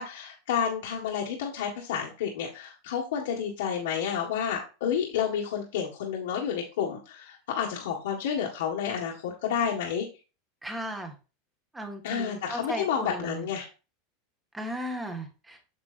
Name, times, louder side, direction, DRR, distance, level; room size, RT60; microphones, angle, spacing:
voice 1, 0.0-10.0 12.0-13.7, left 8 dB, 80° left, -2 dB, 1.6 m, -30 dB
voice 2, 10.6-11.1 11.7-13.5 14.5-15.6, equal, 10° right, 4 dB, 1.6 m, -36 dB
8.2 x 6.3 x 2.5 m, 0.32 s
supercardioid pair, 145°, 0 cm